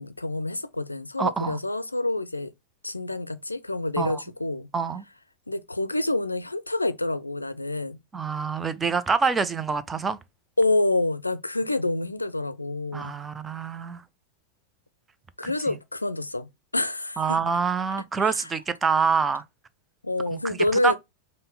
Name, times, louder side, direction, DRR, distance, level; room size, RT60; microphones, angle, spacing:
voice 1, 0.0-2.5 2.8-4.7 5.5-8.0 10.6-13.2 15.4-17.4 18.2-18.5 20.0-20.9, left 2 dB, 85° left, 0.3 m, -27 dB
voice 2, 1.2-1.6 4.0-4.2 4.7-5.0 8.1-10.2 12.9-14.0 15.4-15.5 17.2-19.4 20.3-20.6 20.8-20.9, right 5 dB, 15° right, 0.5 m, -26 dB
5.2 x 2.1 x 4.0 m
figure-of-eight pair, 90°, 0 cm